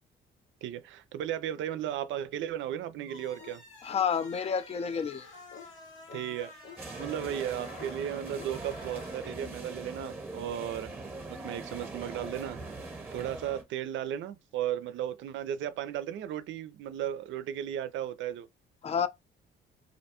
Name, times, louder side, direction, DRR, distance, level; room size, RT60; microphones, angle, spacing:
voice 1, 0.6-3.6 6.1-6.5 7.0-10.9 11.3-12.6 13.1-18.5, right 10 dB, 75° right, 0.4 m, -35 dB
sound 1, 3.0-10.0, left 3 dB, 80° left, 1.0 m, -51 dB
sound 2, 3.4-3.6 3.9-4.1 4.4-4.6 4.9-5.1 5.5-5.7 6.1-6.2 6.6-6.8 7.2-7.4 7.8-7.9 8.3-8.5, left 7 dB, 55° left, 0.8 m, -49 dB
voice 2, 3.8-5.3 18.8-19.1, left 7 dB, 30° left, 0.4 m, -29 dB
sound 3, 6.8-13.6, right 2 dB, 10° right, 0.8 m, -41 dB
2.4 x 2.2 x 2.8 m
cardioid pair, 90°, 20 cm